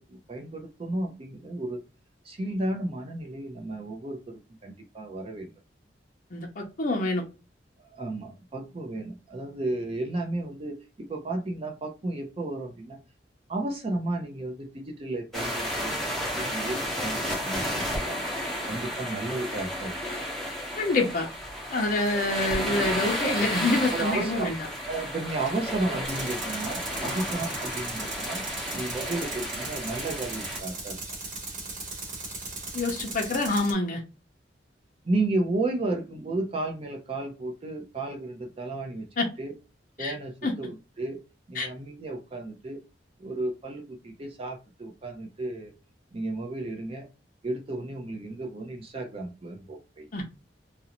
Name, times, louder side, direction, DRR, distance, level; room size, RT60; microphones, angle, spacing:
voice 1, 0.1-1.8 2.2-5.5 7.8-13.0 13.5-18.3 18.7-20.0 23.9-24.5 24.9-28.4 28.7-31.0 35.0-39.1 39.4-39.5 40.0-41.2 41.5-42.8 43.2-45.7 46.1-47.1 47.4-50.1, right 2 dB, 35° right, 0.5 m, -33 dB
voice 2, 6.3-7.2 20.8-21.3 21.7-24.6 32.7-34.0 39.2-39.3 40.0-40.1 40.4-40.5 41.6-41.7 50.1-50.3, left 2 dB, 50° left, 0.5 m, -26 dB
sound 1, 15.3-30.6, equal, ahead, 0.8 m, -32 dB
Tools, 26.0-33.7, right 3 dB, 50° right, 0.9 m, -37 dB
2.5 x 2.0 x 2.8 m
head